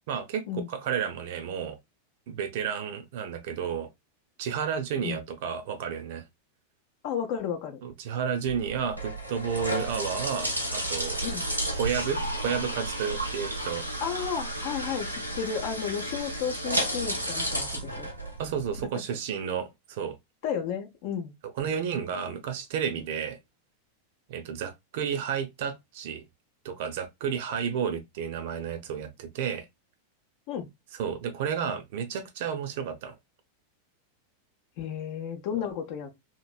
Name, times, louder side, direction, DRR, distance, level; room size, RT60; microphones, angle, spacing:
voice 1, 0.1-1.8 2.3-3.9 4.4-6.2 7.8-11.2 11.7-13.8 18.4-20.2 21.6-23.4 24.3-26.2 26.6-29.7 30.9-33.1, right 7 dB, 50° right, 0.6 m, -31 dB
voice 2, 7.0-7.8 11.2-11.4 14.0-18.1 20.4-21.3 30.5-30.7 34.8-36.1, left 8 dB, 45° left, 0.7 m, -33 dB
sound 1, 8.4-18.8, right 1 dB, 90° right, 0.8 m, -32 dB
2.9 x 2.7 x 2.3 m
figure-of-eight pair, 90°, 0 cm